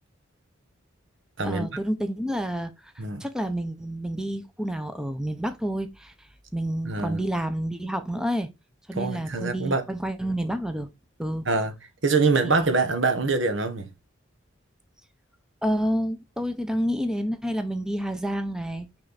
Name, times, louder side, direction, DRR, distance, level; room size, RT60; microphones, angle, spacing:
voice 1, 1.4-2.9 3.2-6.1 6.5-8.5 8.9-10.9 11.2-11.5 12.4-12.7 15.6-18.9, equal, 5° right, 0.7 m, -29 dB
voice 2, 6.8-7.2 8.9-9.9 11.5-11.7 12.0-13.9, right 3 dB, 65° right, 1.3 m, -24 dB
6.2 x 4.5 x 4.0 m
head